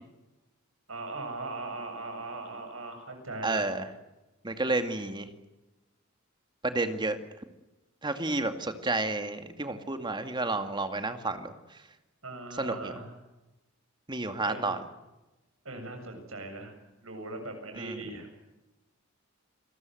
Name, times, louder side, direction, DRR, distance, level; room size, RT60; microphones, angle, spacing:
voice 1, 0.9-3.8 12.2-13.2 14.5-14.7 15.6-16.7 17.0-18.3, right 2 dB, 85° right, 5 dB, 7.6 m, -39 dB
voice 2, 3.4-3.9 4.4-5.3 6.6-7.2 8.0-11.5 12.6-13.0 14.1-14.8 17.8-18.0, right 2 dB, 20° right, 8 dB, 2.2 m, -31 dB
28.5 x 21.0 x 7.9 m, 1.0 s
head